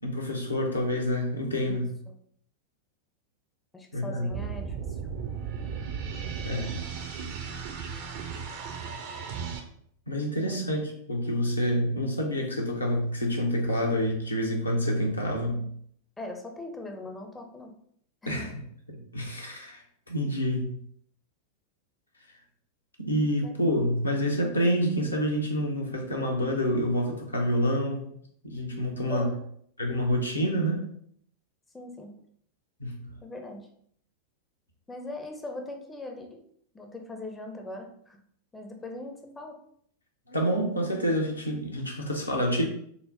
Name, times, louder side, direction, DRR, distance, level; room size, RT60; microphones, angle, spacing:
voice 1, 0.0-1.9 3.9-4.3 6.4-6.7 10.1-15.7 18.3-18.5 18.9-20.7 23.0-28.0 28.4-29.3 29.8-30.8 32.8-32.9 40.3-42.6, equal, 80° left, 0 dB, 0.7 m, -27 dB
voice 2, 1.7-2.2 3.7-5.0 10.4-10.7 16.2-17.7 18.2-18.5 23.4-23.6 29.0-29.4 31.7-32.1 33.2-33.7 34.9-36.4 36.7-38.2 38.5-39.6, left 2 dB, 10° left, 3 dB, 0.5 m, -40 dB
sound 1, 4.3-9.6, right 6 dB, 45° right, 0.5 m, -35 dB
3.9 x 2.0 x 2.8 m, 0.66 s
figure-of-eight pair, 90°, 0 cm